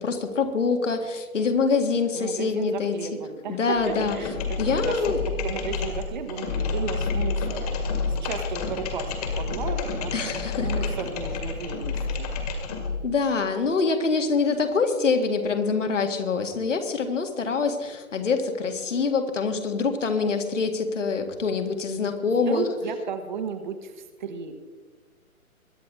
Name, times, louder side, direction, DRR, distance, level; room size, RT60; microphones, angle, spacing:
voice 1, 0.0-2.9 3.5-4.2 4.6-5.2 10.1-10.7 13.0-22.6, left 4 dB, 60° left, 5 dB, 2.0 m, -25 dB
voice 2, 2.1-5.0 5.4-12.3 22.3-24.5, right 6 dB, 35° right, 7 dB, 1.2 m, -34 dB
sound 1, 3.8-13.1, left 4 dB, 25° left, 2.0 m, -29 dB
22.5 x 10.0 x 3.7 m, 1.4 s
figure-of-eight pair, 135°, 43 cm